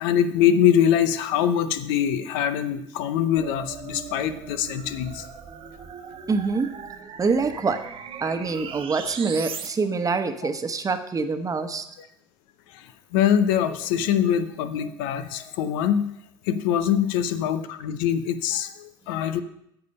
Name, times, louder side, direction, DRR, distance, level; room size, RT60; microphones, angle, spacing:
voice 1, 0.0-5.3 12.7-16.1 16.5-19.4, left 9 dB, 75° left, 11 dB, 0.7 m, -23 dB
sound 1, 3.4-9.7, right 7 dB, 50° right, 1.1 m, -39 dB
voice 2, 6.3-6.7 7.2-7.8 8.2-11.8, right 4 dB, 30° right, 8 dB, 1.1 m, -25 dB
9.4 x 6.9 x 5.4 m, 0.76 s
hypercardioid pair, 65°, 12 cm